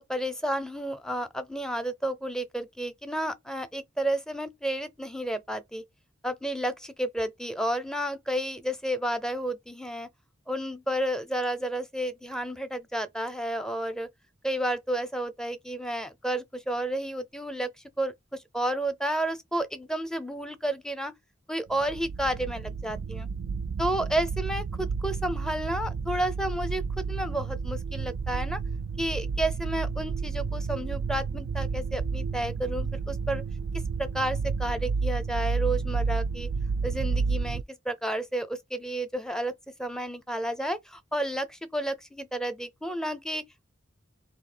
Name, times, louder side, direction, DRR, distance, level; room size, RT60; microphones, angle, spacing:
voice 1, 0.0-5.8 6.2-10.1 10.5-14.1 14.4-17.7 18.0-21.1 21.5-23.3 23.8-28.6 29.0-33.4 34.0-36.5 36.8-39.5 39.8-43.4, right 1 dB, 5° left, 0.6 m, -31 dB
sound 1, 21.7-37.6, right 5 dB, 75° right, 0.3 m, -31 dB
3.9 x 2.7 x 4.3 m
head